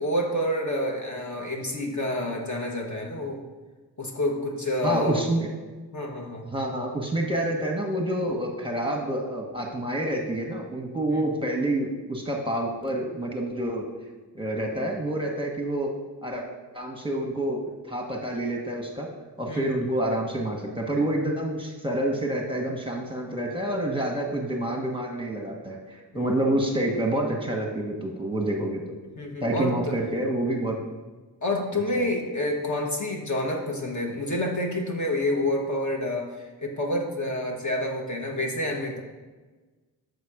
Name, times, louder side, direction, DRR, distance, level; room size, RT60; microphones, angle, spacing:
voice 1, 0.0-3.4 4.0-5.2 5.9-6.5 11.1-11.3 19.5-19.8 26.1-26.3 29.2-29.9 31.4-39.0, left 1 dB, 45° left, 0 dB, 1.3 m, -28 dB
voice 2, 4.8-5.5 6.4-13.8 14.3-15.9 16.2-16.4 16.7-19.1 19.4-28.9 29.4-30.8 31.9-32.0, right 1 dB, 10° right, 0 dB, 1.3 m, -28 dB
6.6 x 4.1 x 5.0 m, 1.3 s
cardioid pair, 55°, 41 cm